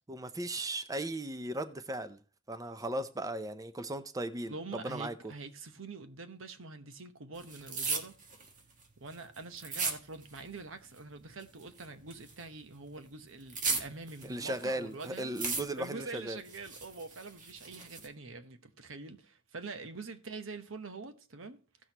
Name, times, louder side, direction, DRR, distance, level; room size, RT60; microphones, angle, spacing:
voice 1, 0.1-2.2 2.5-5.3 14.2-16.4, right 1 dB, 20° right, 0.6 m, -37 dB
voice 2, 4.5-8.2 9.0-15.3 15.8-21.6, right 3 dB, 80° right, 1.0 m, -45 dB
sound 1, 7.4-10.6 10.9-12.5 12.9-14.7 15.0-16.0 16.4-18.1, right 4 dB, 40° right, 1.6 m, -37 dB
16.5 x 6.3 x 2.9 m
head